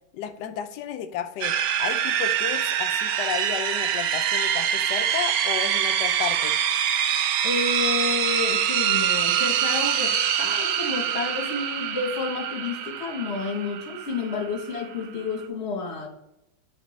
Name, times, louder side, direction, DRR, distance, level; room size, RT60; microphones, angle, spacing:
voice 1, 0.1-6.6, left 9 dB, 75° left, 7 dB, 1.0 m, -33 dB
sound 1, 1.4-15.4, right 9 dB, 70° right, 1.1 m, -25 dB
voice 2, 7.4-16.1, left 4 dB, 45° left, 2 dB, 1.0 m, -30 dB
8.7 x 4.0 x 3.1 m, 0.87 s
omnidirectional pair, 2.2 m